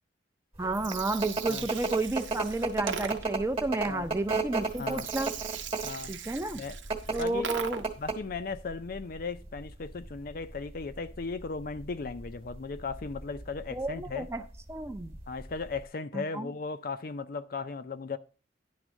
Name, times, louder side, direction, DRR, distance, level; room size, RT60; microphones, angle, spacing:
voice 1, 0.6-5.3 6.1-6.6 7.1-7.8 13.7-14.4 14.7-15.1 16.1-16.5, right 2 dB, 15° right, 0.5 m, -31 dB
sound 1, 0.6-15.8, right 3 dB, 30° right, 1.2 m, -35 dB
Gurgling, 0.6-8.1, right 7 dB, 85° right, 0.9 m, -40 dB
voice 2, 4.8-5.1 5.8-6.1 6.5-6.8 7.2-7.5 8.0-14.3 15.3-18.2, left 4 dB, 50° left, 0.5 m, -36 dB
10.5 x 3.6 x 6.1 m
head